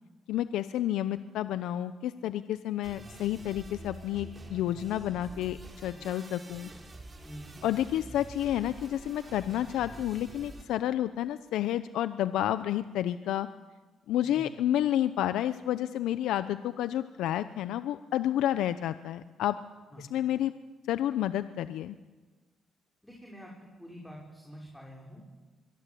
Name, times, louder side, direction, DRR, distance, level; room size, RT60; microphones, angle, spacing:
voice 1, 0.3-6.7 7.6-13.5 14.1-19.6 20.0-20.5 20.9-22.0, left 12 dB, 85° left, 12 dB, 0.7 m, -30 dB
sound 1, 2.8-10.6, right 2 dB, 30° right, 5.0 m, -47 dB
voice 2, 7.2-7.6 14.2-14.5 19.9-20.1 23.0-23.5 23.8-25.2, equal, 5° left, -2 dB, 5.8 m, -47 dB
23.5 x 23.0 x 8.5 m, 1.3 s
cardioid pair, 90°, 0 cm